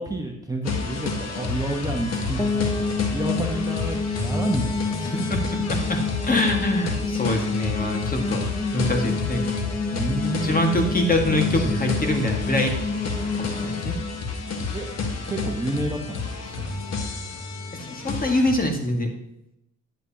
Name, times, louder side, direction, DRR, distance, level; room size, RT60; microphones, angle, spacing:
voice 1, 0.0-4.9 9.9-10.5 14.7-14.9 15.2-16.7, right 1 dB, 10° right, 1 dB, 1.2 m, -30 dB
sound 1, 0.6-18.5, left 4 dB, 55° left, 1.5 m, -30 dB
sound 2, 2.4-15.3, left 4 dB, 10° left, 0.5 m, -30 dB
voice 2, 5.1-8.5 8.7-9.4 10.3-12.7 13.4-14.0 17.9-19.1, left 1 dB, 30° left, 3 dB, 1.7 m, -24 dB
10.5 x 7.9 x 2.9 m, 0.80 s
cardioid pair, 90°, 30 cm